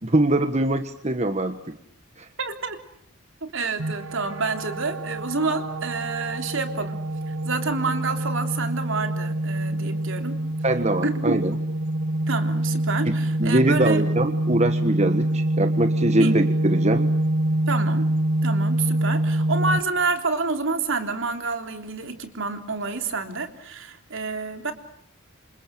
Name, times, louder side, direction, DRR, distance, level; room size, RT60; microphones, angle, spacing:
voice 1, 0.0-1.8 2.2-2.3 10.6-11.6 13.0-13.1 13.4-17.1, right 1 dB, 30° right, 8 dB, 1.4 m, -23 dB
voice 2, 2.4-2.8 3.4-7.0 7.3-10.4 11.0-11.4 12.3-14.1 16.2-16.3 17.7-18.1 18.4-24.7, right 3 dB, 60° right, 7 dB, 3.5 m, -28 dB
sound 1, 3.8-19.8, right 1 dB, 80° right, 2.2 m, -25 dB
28.5 x 27.0 x 7.7 m, 0.68 s
head